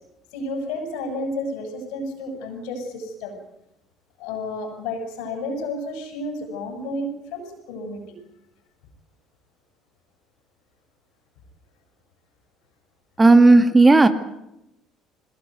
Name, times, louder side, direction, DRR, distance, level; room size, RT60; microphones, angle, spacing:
voice 1, 0.3-3.4 4.2-8.0, left 1 dB, 70° left, 5 dB, 7.7 m, -31 dB
voice 2, 13.2-14.1, right 3 dB, 20° right, 10 dB, 2.0 m, -12 dB
22.0 x 20.0 x 9.4 m, 0.86 s
hypercardioid pair, 65°, 0 cm